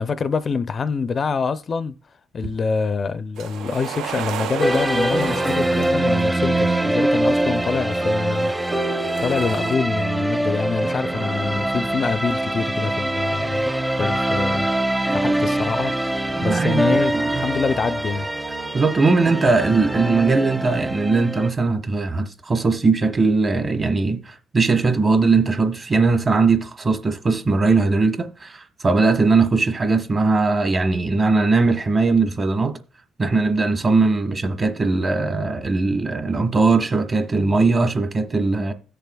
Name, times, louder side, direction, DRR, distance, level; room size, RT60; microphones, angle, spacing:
voice 1, 0.0-1.9 2.3-8.5 9.2-13.7 14.0-15.9 16.4-18.3, left 5 dB, 45° left, 0.4 m, -25 dB
sound 1, 3.4-6.7 7.6-9.8, right 8 dB, 85° right, 0.5 m, -33 dB
sound 2, 4.6-21.5, right 1 dB, 10° right, 0.6 m, -23 dB
voice 2, 16.5-17.4 18.7-32.8 33.2-38.7, right 3 dB, 35° right, 1.1 m, -20 dB
16.5 x 6.8 x 2.2 m
cardioid pair, 90°, 0 cm